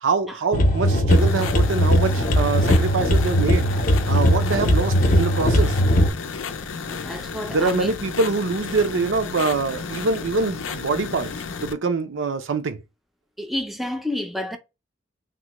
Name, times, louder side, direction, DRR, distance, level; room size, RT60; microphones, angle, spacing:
voice 1, 0.0-3.7 4.1-5.8 7.5-11.3 11.6-12.8, right 4 dB, 75° right, 0.5 m, -24 dB
sound 1, 0.5-6.1, equal, 45° left, 0.6 m, -19 dB
sound 2, 1.1-11.7, left 5 dB, 85° left, 0.5 m, -33 dB
voice 2, 6.9-7.9 13.4-14.6, left 1 dB, ahead, 0.4 m, -30 dB
3.6 x 2.1 x 2.9 m
head